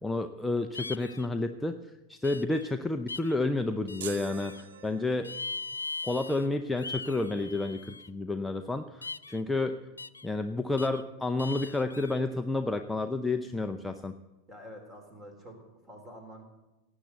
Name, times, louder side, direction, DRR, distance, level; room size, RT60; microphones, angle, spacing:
voice 1, 0.0-1.7 2.1-5.3 6.0-9.8 10.2-14.1, left 2 dB, 5° left, 7 dB, 0.7 m, -30 dB
sound 1, 0.7-1.3 2.2-2.7 3.1-3.4 3.9-4.6 5.2-6.5 6.8-8.1 9.0-9.4 10.0-10.3 10.8-11.0 11.4-12.2, left 3 dB, 80° left, 0.4 m, -40 dB
sound 2, 4.0-5.6, right 9 dB, 60° right, 0.8 m, -44 dB
voice 2, 14.5-16.4, equal, 20° right, 5 dB, 3.8 m, -48 dB
18.0 x 8.1 x 8.0 m, 1.0 s
figure-of-eight pair, 90°, 0 cm